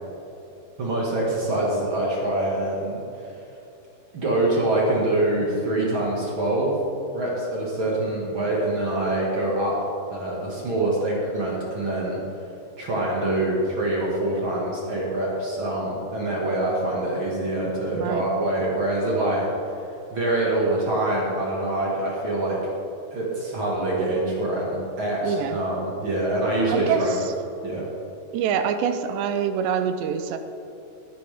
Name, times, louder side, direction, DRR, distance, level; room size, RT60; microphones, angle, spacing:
voice 1, 0.8-3.3 4.1-6.7 7.1-9.8 10.1-12.2 12.8-19.5 20.1-22.6 23.1-25.8 26.0-27.1 27.6-27.8, right 1 dB, 50° right, -4 dB, 1.6 m, -25 dB
voice 2, 17.9-18.2 25.2-25.6 26.7-27.3 28.3-30.4, right 7 dB, 80° right, 8 dB, 2.7 m, -25 dB
18.5 x 10.0 x 3.5 m, 2.8 s
omnidirectional pair, 5.2 m